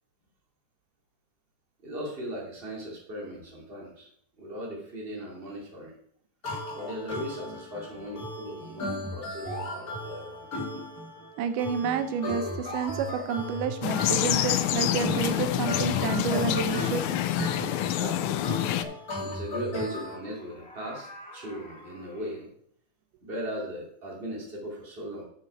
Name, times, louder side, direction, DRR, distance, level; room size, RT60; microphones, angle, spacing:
voice 1, 1.8-4.1 4.4-6.0 6.7-10.5 17.7-18.5 19.1-22.5 23.2-25.2, equal, 20° right, -2 dB, 2.3 m, -38 dB
sound 1, 6.4-20.2, equal, 30° left, 2.5 m, -36 dB
voice 2, 11.4-17.1, right 6 dB, 85° right, 10 dB, 2.3 m, -30 dB
sound 2, 12.0-14.4 15.4-17.0 19.5-22.4, left 1 dB, 5° left, 2.0 m, -50 dB
sound 3, 13.8-18.8, left 13 dB, 80° left, 1.8 m, -27 dB
8.5 x 6.8 x 4.8 m, 0.66 s
omnidirectional pair, 3.6 m